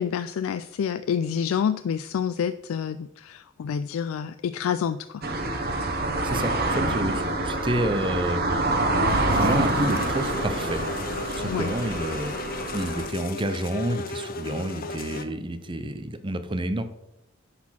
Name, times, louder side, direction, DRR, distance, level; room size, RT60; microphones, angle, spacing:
voice 1, 0.0-5.2 11.4-11.7, left 7 dB, 90° left, 12 dB, 0.3 m, -28 dB
sound 1, 5.2-13.1, right 2 dB, 50° right, 1.2 m, -26 dB
voice 2, 6.2-8.7 9.3-10.8 11.3-12.3 12.7-16.8, right 1 dB, 25° right, 10 dB, 0.6 m, -29 dB
sound 2, 9.1-15.2, left 3 dB, 45° left, 0.7 m, -35 dB
10.5 x 4.3 x 5.7 m, 0.88 s
head